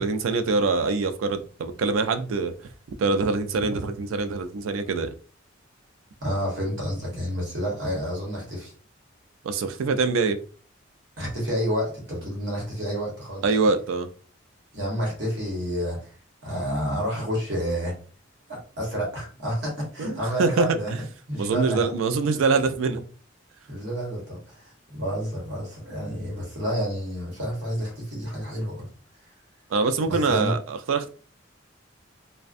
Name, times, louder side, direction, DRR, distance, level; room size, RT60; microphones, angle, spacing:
voice 1, 0.0-2.5 3.0-5.1 9.4-10.4 13.4-14.1 20.0-21.0 21.4-23.1 29.7-31.1, right 4 dB, 90° right, 0.3 m, -24 dB
voice 2, 6.2-8.7 11.2-13.7 14.7-16.1 16.4-17.9 18.5-20.9 21.3-21.9 23.7-28.9 30.0-30.5, equal, 60° right, 1.1 m, -29 dB
2.4 x 2.1 x 2.5 m
head